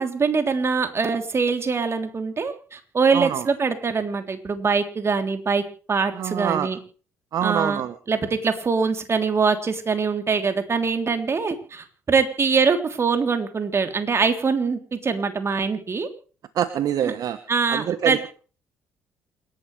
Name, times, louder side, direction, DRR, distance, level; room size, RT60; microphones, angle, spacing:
voice 1, 0.0-5.6 5.9-6.8 7.4-7.8 8.1-16.1 17.0-17.1 17.5-18.2, right 5 dB, 35° right, 6 dB, 3.3 m, -23 dB
voice 2, 3.1-3.5 6.1-6.7 7.3-7.9 16.5-17.4 17.7-18.3, right 10 dB, 60° right, 13 dB, 1.1 m, -25 dB
28.5 x 12.0 x 3.3 m, 0.39 s
hypercardioid pair, 55°, 7 cm